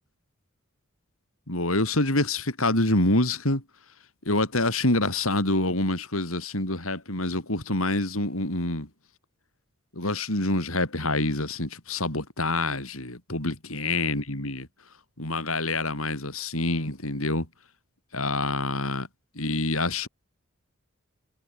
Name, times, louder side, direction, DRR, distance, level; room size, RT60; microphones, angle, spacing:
voice 1, 1.5-3.6 4.3-8.9 9.9-14.7 15.2-17.5 18.1-19.1 19.4-20.1, left 2 dB, 85° left, 6.9 m, -26 dB
head